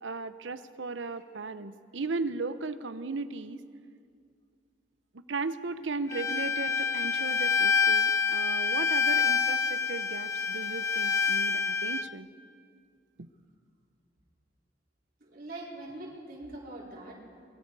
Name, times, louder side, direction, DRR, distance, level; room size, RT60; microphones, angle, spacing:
voice 1, 0.0-3.6 5.1-12.3 13.2-13.3, right 3 dB, 80° right, 13 dB, 0.8 m, -36 dB
Bowed string instrument, 6.1-12.0, left 5 dB, 15° left, 0.5 m, -27 dB
voice 2, 15.2-17.1, right 2 dB, 55° right, -5 dB, 4.4 m, -42 dB
25.0 x 22.0 x 4.8 m, 2.2 s
head